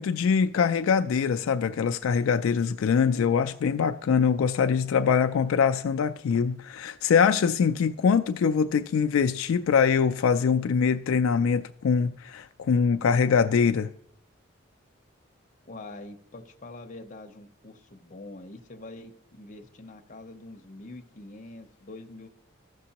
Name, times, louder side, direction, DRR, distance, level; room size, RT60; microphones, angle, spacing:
voice 1, 0.0-13.9, left 6 dB, 75° left, 0.3 m, -23 dB
voice 2, 15.7-22.3, left 2 dB, 35° left, 0.7 m, -45 dB
14.5 x 6.0 x 2.9 m
head